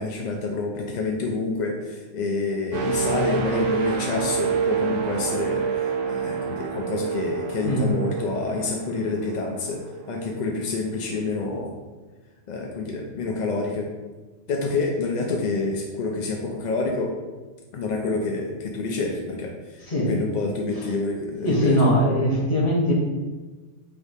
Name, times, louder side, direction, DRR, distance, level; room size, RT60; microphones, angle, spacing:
voice 1, 0.0-9.8 10.1-11.7 12.5-13.9 14.5-17.1 17.7-19.8 20.1-21.8, left 3 dB, 65° left, 1 dB, 0.4 m, -28 dB
sound 1, 2.7-10.5 11.0-11.2, right 6 dB, 75° right, 1.0 m, -28 dB
voice 2, 19.9-20.2 20.7-20.9 21.4-22.9, equal, 35° left, -5 dB, 1.1 m, -21 dB
4.8 x 3.4 x 2.7 m, 1.3 s
omnidirectional pair, 1.2 m